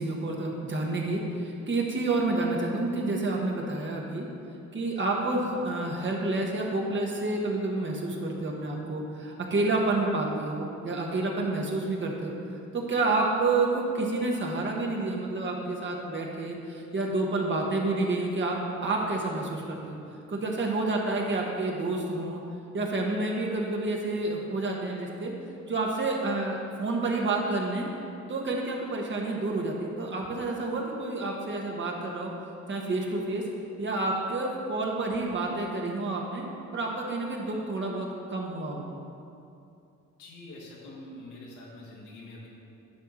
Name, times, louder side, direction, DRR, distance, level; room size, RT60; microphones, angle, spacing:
voice 1, 0.0-4.3 4.7-18.6 18.8-20.0 20.3-22.4 22.7-25.3 25.7-27.9 28.3-32.3 32.7-33.4 33.8-36.4 36.7-38.9, right 2 dB, 40° right, -1 dB, 1.4 m, -29 dB
voice 2, 40.2-42.5, left 1 dB, 80° left, -4 dB, 2.0 m, -45 dB
10.0 x 3.6 x 6.3 m, 2.6 s
cardioid pair, 90°, 30 cm